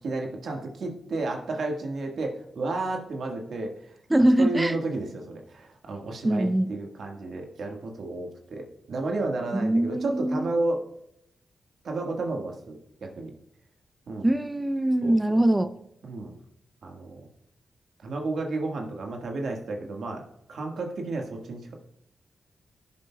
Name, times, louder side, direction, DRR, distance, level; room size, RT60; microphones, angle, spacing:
voice 1, 0.0-4.0 4.4-10.9 11.8-13.3 14.1-14.2 15.0-15.2 16.0-16.4 16.8-17.2 18.0-20.2 20.5-21.7, right 2 dB, 70° right, 1.6 m, -32 dB
voice 2, 4.1-4.7 6.2-6.7 9.5-10.5 14.2-15.7, right 1 dB, 20° right, 0.5 m, -22 dB
17.0 x 7.4 x 2.3 m
supercardioid pair, 45°, 0 cm